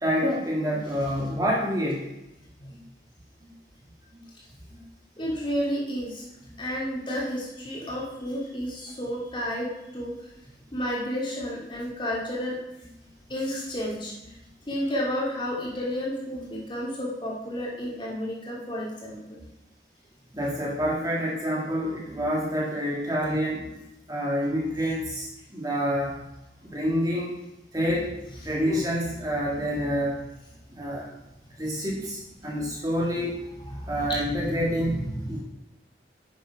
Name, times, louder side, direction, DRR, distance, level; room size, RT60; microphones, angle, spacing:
voice 1, 0.0-2.1 2.7-2.8 3.4-3.5 4.1-4.2 4.7-4.8 6.4-6.5 10.7-10.8 20.3-23.8 24.1-26.2 26.7-27.4 27.7-28.2 28.4-30.2 30.7-31.1 31.6-33.4 33.9-35.0 35.3-35.4, equal, 20° right, -3 dB, 2.1 m, -27 dB
voice 2, 5.2-6.2 6.6-10.1 10.7-12.6 13.3-14.1 14.7-19.4 28.7-28.8 33.7-34.2 35.2-35.4, equal, 25° left, -4 dB, 3.0 m, -31 dB
9.7 x 7.6 x 5.9 m, 0.92 s
head